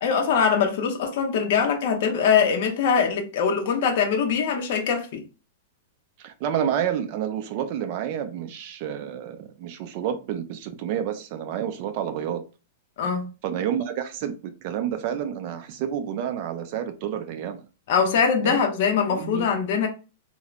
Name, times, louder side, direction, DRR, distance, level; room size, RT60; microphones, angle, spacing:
voice 1, 0.0-5.2 13.0-13.3 17.9-19.9, left 6 dB, 50° left, 0.6 m, -22 dB
voice 2, 6.2-12.4 13.4-17.6 18.4-18.6 19.2-19.5, right 9 dB, 35° right, 0.4 m, -29 dB
3.1 x 2.0 x 2.4 m
supercardioid pair, 170°, 0 cm